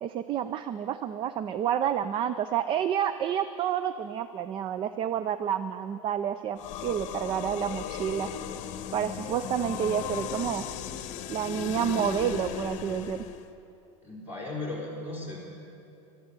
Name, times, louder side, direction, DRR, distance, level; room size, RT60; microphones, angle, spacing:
voice 1, 0.0-8.3 8.9-10.7 11.3-13.2, right 9 dB, 30° right, 12 dB, 0.4 m, -29 dB
sound 1, 6.6-13.5, left 10 dB, 45° left, 1.0 m, -36 dB
voice 2, 14.0-15.4, left 2 dB, 15° right, -4 dB, 4.6 m, -36 dB
12.5 x 12.0 x 8.3 m, 2.7 s
supercardioid pair, 130°, 17 cm